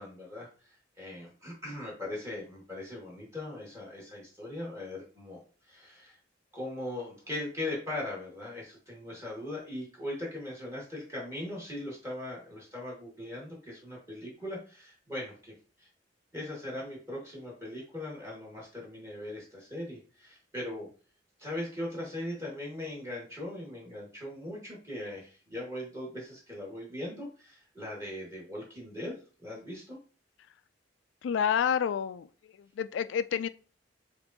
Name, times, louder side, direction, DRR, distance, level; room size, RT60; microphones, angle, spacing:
voice 1, 0.0-5.4 5.7-6.2 6.5-15.5 15.8-15.9 16.3-20.9 21.4-29.1 29.4-30.0, left 1 dB, 15° right, 1.9 m, -39 dB
voice 2, 31.2-32.3 32.6-33.5, left 8 dB, 75° left, 0.3 m, -29 dB
6.6 x 2.6 x 2.7 m
head